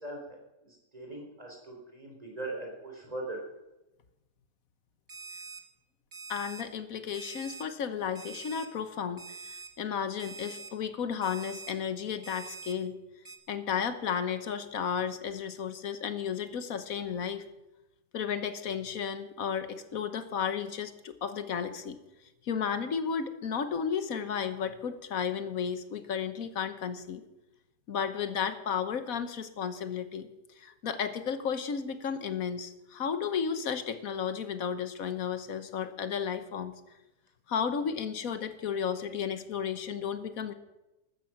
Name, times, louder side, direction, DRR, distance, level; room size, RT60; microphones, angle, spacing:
voice 1, 0.6-3.4, right 2 dB, 20° right, 0 dB, 3.9 m, -40 dB
Alarm, 5.1-5.6 6.1-6.6 7.1-7.6 8.2-8.7 9.2-9.7 10.2-10.7 11.2-11.7 12.2-12.7 13.3-13.4, right 4 dB, 40° right, 3.1 m, -44 dB
voice 2, 6.3-13.0 13.5-17.4 18.1-22.0 22.4-27.2 27.9-30.3 30.6-36.7 37.5-40.5, left 7 dB, 60° left, 11 dB, 1.5 m, -33 dB
14.5 x 13.5 x 5.8 m, 0.99 s
omnidirectional pair, 1.8 m